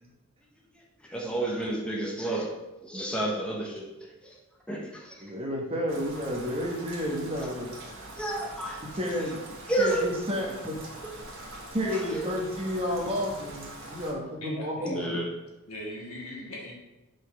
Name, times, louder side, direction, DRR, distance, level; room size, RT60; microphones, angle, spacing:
voice 1, 1.1-2.5 2.8-4.1 4.7-5.2 8.2-8.8 9.7-10.0 11.9-12.3 14.9-15.2, right 1 dB, 5° left, -2 dB, 1.0 m, -30 dB
voice 2, 5.2-7.7 8.8-10.9 11.7-15.1, equal, 25° right, 0 dB, 1.1 m, -31 dB
Rain, 5.9-14.1, right 1 dB, 65° right, 1.4 m, -43 dB
voice 3, 14.4-15.0 15.7-16.7, left 1 dB, 70° left, -3 dB, 1.7 m, -39 dB
5.4 x 4.0 x 5.3 m, 1.0 s
head